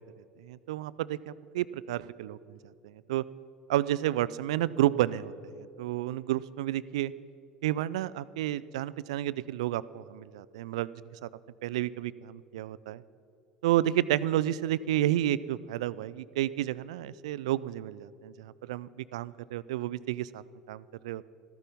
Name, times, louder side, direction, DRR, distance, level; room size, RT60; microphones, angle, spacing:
voice 1, 0.4-2.6 2.8-3.2 3.7-5.3 5.6-7.1 7.6-10.9 11.2-11.3 11.6-13.0 13.6-21.2, right 13 dB, 70° right, 18 dB, 0.4 m, -31 dB
14.0 x 13.5 x 5.3 m, 2.6 s
hypercardioid pair, 70°, 3 cm